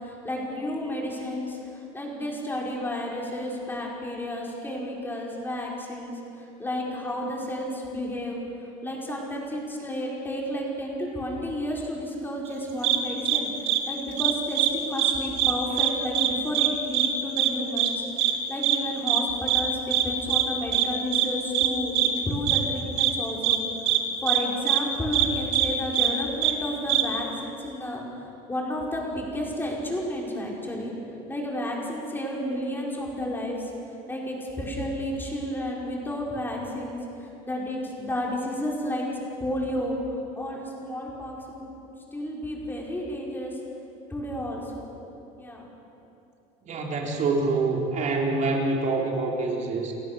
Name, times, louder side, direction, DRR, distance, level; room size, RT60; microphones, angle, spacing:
voice 1, 0.0-1.6 1.9-8.4 8.8-23.6 24.2-28.0 28.5-30.9 31.3-33.7 34.1-39.1 39.4-40.0 40.4-41.6 42.1-43.5 44.1-44.9 45.4-45.7, left 1 dB, 10° left, -2 dB, 5.2 m, -31 dB
sound 1, 12.8-13.0 13.2-13.4 13.7-13.8 14.2-14.7 15.0-15.1 15.4-15.9 16.1-16.3 16.5-16.7 16.9-17.1 17.4-17.5 17.8-17.9 18.2-18.3 18.6-18.8 19.1-19.2 19.5-19.6 19.9-20.0 20.3-20.4 20.7-20.8 21.1-21.3 21.5-21.7 21.9-22.1 22.5-22.6 23.0-23.1 23.4-23.6 23.9-24.0 24.3-24.4 24.7-24.8 25.1-25.3 25.5-25.7 25.9-26.1 26.4-26.5 26.9-27.0, right 13 dB, 75° right, 2.3 m, -22 dB
voice 2, 46.6-49.9, right 3 dB, 40° right, -1 dB, 3.9 m, -26 dB
30.0 x 16.5 x 6.9 m, 2.9 s
cardioid pair, 130°, 18 cm